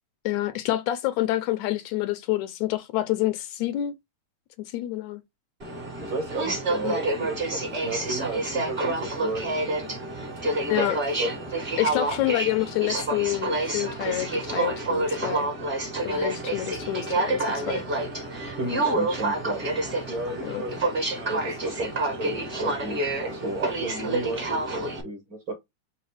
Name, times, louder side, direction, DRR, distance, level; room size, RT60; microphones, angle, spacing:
voice 1, 0.3-3.9 4.6-5.2 6.8-7.0 10.7-11.0 11.8-15.5 16.1-17.9 20.4-20.6, left 15 dB, 80° left, 1.8 m, -28 dB
Aircraft, 5.6-25.0, right 2 dB, 30° right, 0.9 m, -28 dB
voice 2, 6.0-9.6 10.4-11.3 18.6-19.6 20.1-20.7 21.2-25.5, right 2 dB, 50° right, 1.7 m, -33 dB
4.7 x 2.2 x 4.7 m
omnidirectional pair, 3.4 m